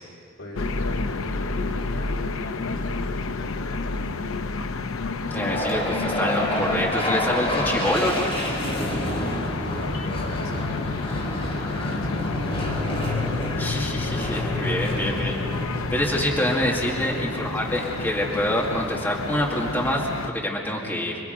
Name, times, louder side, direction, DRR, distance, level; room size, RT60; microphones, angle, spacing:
voice 1, 0.4-4.0 8.6-9.5 10.0-12.9 14.9-15.4 16.9-17.3, equal, 65° left, 0 dB, 3.9 m, -40 dB
sound 1, 0.5-20.3, left 3 dB, 85° left, 0.7 m, -30 dB
voice 2, 5.2-8.3 13.6-15.3 15.9-21.2, equal, 10° left, -3 dB, 2.2 m, -26 dB
sound 2, 5.3-19.5, equal, 30° left, 5.3 m, -30 dB
27.0 x 23.0 x 5.3 m, 2.5 s
head